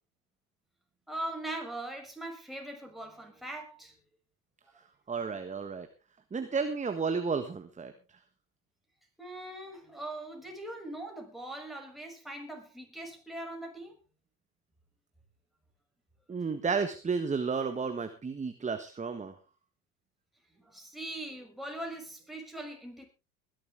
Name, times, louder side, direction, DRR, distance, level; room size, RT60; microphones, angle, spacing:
voice 1, 1.1-3.9 9.2-14.0 20.6-23.1, right 1 dB, ahead, 6.2 m, -41 dB
voice 2, 5.1-5.9 6.3-7.9 16.3-19.3, right 5 dB, 20° right, 1.5 m, -32 dB
21.0 x 11.5 x 3.5 m
hypercardioid pair, 90°, 40 cm